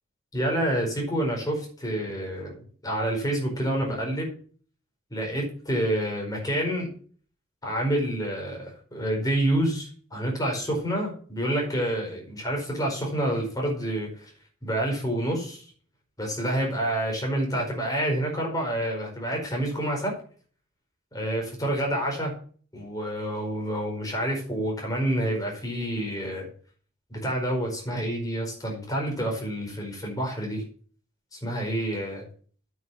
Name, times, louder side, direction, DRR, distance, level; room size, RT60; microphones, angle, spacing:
voice 1, 0.3-4.3 5.1-6.9 7.6-14.3 14.6-15.6 16.2-20.2 21.1-22.4 22.7-26.5 27.1-30.6 31.3-32.2, right 1 dB, 20° left, 0 dB, 4.7 m, -28 dB
9.0 x 6.5 x 7.2 m, 0.44 s
head